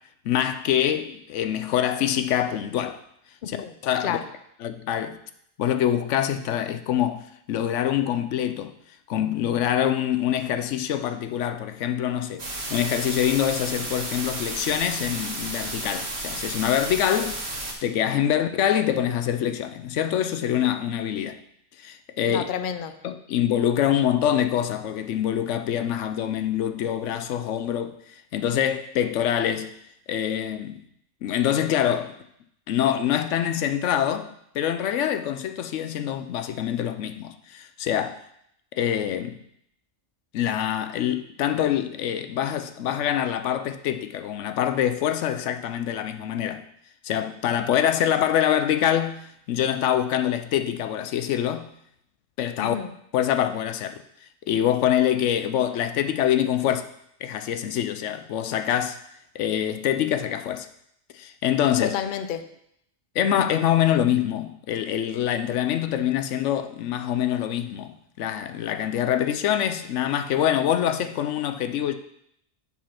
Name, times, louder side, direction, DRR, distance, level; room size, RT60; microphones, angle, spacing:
voice 1, 0.2-3.0 3.5-3.6 3.8-4.2 4.6-5.2 5.6-8.7 9.1-17.4 17.8-21.4 21.8-22.4 23.0-28.0 28.3-29.7 30.1-30.8 31.2-32.1 32.7-38.2 38.7-39.4 40.3-46.6 47.0-51.7 52.4-52.8 53.1-54.0 54.5-56.9 57.2-59.0 59.3-60.7 61.1-61.9 63.1-71.9, left 10 dB, 85° left, 0.9 m, -25 dB
voice 2, 3.4-3.7 4.0-4.2 18.3-18.5 22.3-22.9 52.6-52.9 61.8-62.5, left 9 dB, 55° left, 0.6 m, -30 dB
sound 1, 12.4-17.7, right 2 dB, 65° right, 1.7 m, -32 dB
7.6 x 4.1 x 5.7 m
omnidirectional pair, 1.2 m